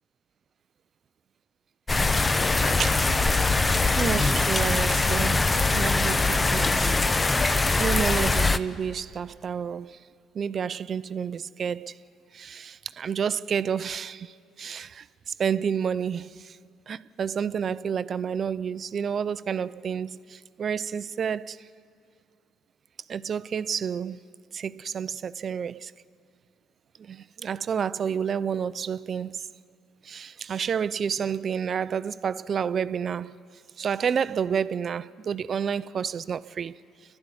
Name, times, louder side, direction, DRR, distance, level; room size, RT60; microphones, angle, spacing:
sound 1, 1.9-8.6, left 3 dB, 25° left, 0.8 m, -22 dB
voice 1, 2.8-7.0 7.8-10.0 10.3-12.0 12.3-16.6 16.9-21.7 23.1-24.2 24.5-25.9 27.0-29.5 30.0-33.4 33.8-36.8, right 7 dB, 50° right, 0.5 m, -30 dB
30.0 x 12.0 x 9.7 m
hypercardioid pair, 55°, 0 cm